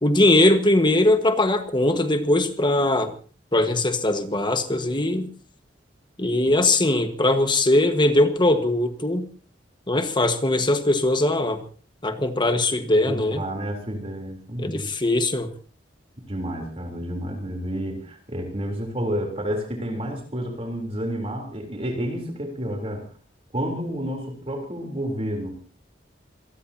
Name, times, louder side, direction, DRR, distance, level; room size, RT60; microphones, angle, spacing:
voice 1, 0.0-3.1 3.5-5.3 6.2-9.3 9.9-11.6 12.0-13.4 14.6-15.5, left 1 dB, 25° left, 7 dB, 1.5 m, -20 dB
voice 2, 13.1-14.9 16.2-23.1 23.5-25.5, equal, 35° right, 2 dB, 3.6 m, -30 dB
27.0 x 18.5 x 2.8 m, 0.39 s
head